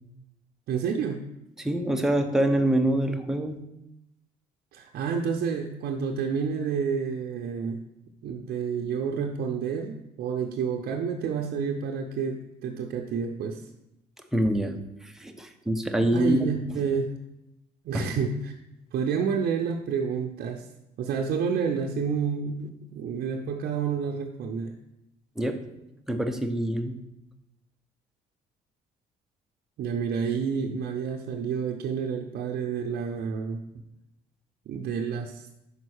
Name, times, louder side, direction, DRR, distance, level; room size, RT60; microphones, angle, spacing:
voice 1, 0.7-1.2 4.7-7.8 8.2-13.6 16.1-17.2 17.8-18.5 18.9-20.7 21.0-24.7 29.8-33.6 34.7-35.5, right 6 dB, 65° right, 2 dB, 0.6 m, -29 dB
voice 2, 1.6-3.6 14.3-16.5 17.9-18.1 25.4-25.6 26.1-26.9, right 1 dB, 5° right, 5 dB, 0.8 m, -25 dB
5.3 x 5.2 x 6.4 m, 0.89 s
cardioid pair, 110°, 17 cm